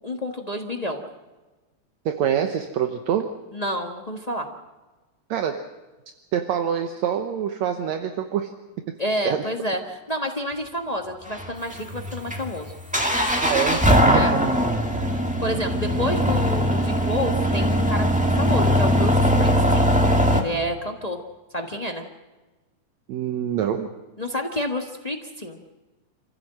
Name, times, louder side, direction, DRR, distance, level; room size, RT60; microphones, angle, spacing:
voice 1, 0.0-1.0 3.5-4.5 9.0-12.7 14.1-14.3 15.4-19.9 20.3-21.2 21.5-22.0 24.2-25.6, equal, 40° left, 3 dB, 0.5 m, -29 dB
voice 2, 2.1-3.3 5.3-5.7 6.3-8.5 8.9-9.0 9.3-9.5 13.4-14.6 14.9-15.0 23.1-23.9, right 9 dB, 70° right, 6 dB, 2.2 m, -26 dB
sound 1, 11.3-20.4, equal, 5° right, 1.6 m, -20 dB
27.5 x 15.5 x 7.6 m, 1.2 s
omnidirectional pair, 3.4 m